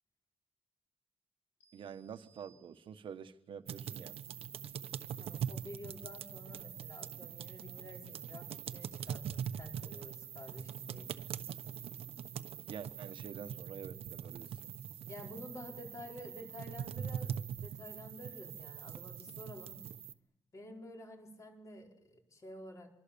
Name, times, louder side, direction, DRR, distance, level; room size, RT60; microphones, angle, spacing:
sound 1, 1.6-3.3, right 5 dB, 85° left, 3.5 m, -69 dB
voice 1, 1.7-4.2 12.7-14.7, right 7 dB, 60° right, 10 dB, 1.4 m, -47 dB
sound 2, 3.7-20.1, right 8 dB, 85° right, 1.2 m, -43 dB
voice 2, 5.2-11.3 15.1-19.8 20.5-22.9, left 1 dB, 35° left, 1 dB, 4.7 m, -50 dB
26.5 x 24.0 x 7.1 m, 0.75 s
wide cardioid pair, 180°, 10 cm